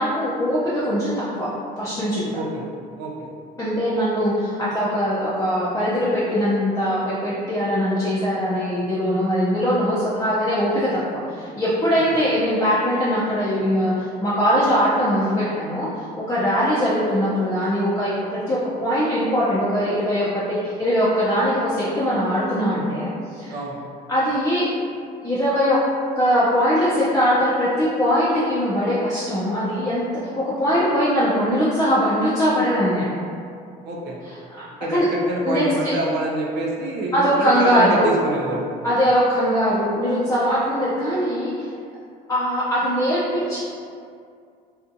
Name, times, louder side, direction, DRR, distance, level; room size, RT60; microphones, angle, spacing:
voice 1, 0.0-1.5 1.8-2.4 3.6-23.6 24.1-24.7 25.2-25.8 26.2-33.1 34.2-34.4 34.9-35.1 35.4-35.9 37.1-38.1 38.8-41.7 42.3-43.6, equal, 20° left, -10 dB, 0.5 m, -21 dB
voice 2, 3.0-3.3 11.9-12.0 23.5-23.8 33.8-34.2 34.8-38.7, right 1 dB, 80° right, -2 dB, 0.5 m, -27 dB
2.6 x 2.3 x 2.6 m, 2.3 s
cardioid pair, 110°, 17 cm